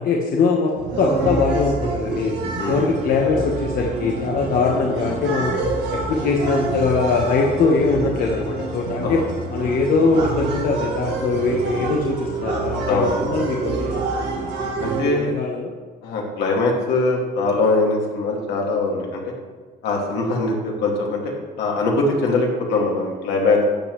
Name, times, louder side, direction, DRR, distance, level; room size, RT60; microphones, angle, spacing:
voice 1, 0.0-2.4 2.7-5.5 5.9-9.2 9.5-14.0 15.0-15.7, left 4 dB, 60° left, -1 dB, 1.2 m, -21 dB
sound 1, 0.8-15.0, right 3 dB, 85° right, 2.0 m, -27 dB
voice 2, 14.8-15.3 16.0-19.3 19.8-21.3 21.6-23.6, left 3 dB, 80° left, -1 dB, 2.3 m, -22 dB
12.0 x 8.0 x 3.2 m, 1.5 s
cardioid pair, 110°, 17 cm